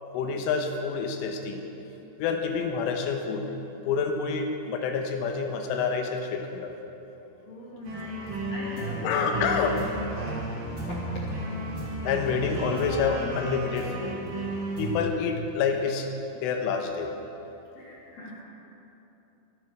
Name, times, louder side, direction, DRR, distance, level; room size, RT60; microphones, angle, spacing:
voice 1, 0.1-1.6 2.2-3.4 3.9-6.7 9.0-9.8 12.0-14.1 14.8-16.1 16.4-17.1, left 5 dB, 85° left, 3 dB, 3.7 m, -28 dB
voice 2, 7.5-9.3 10.3-10.4 10.7-11.2 11.5-11.7 17.7-18.4, left 1 dB, 60° left, -5 dB, 1.7 m, -41 dB
sound 1, 7.8-14.9, right 1 dB, 50° right, 5.1 m, -33 dB
24.5 x 8.8 x 6.1 m, 3.0 s
omnidirectional pair, 5.6 m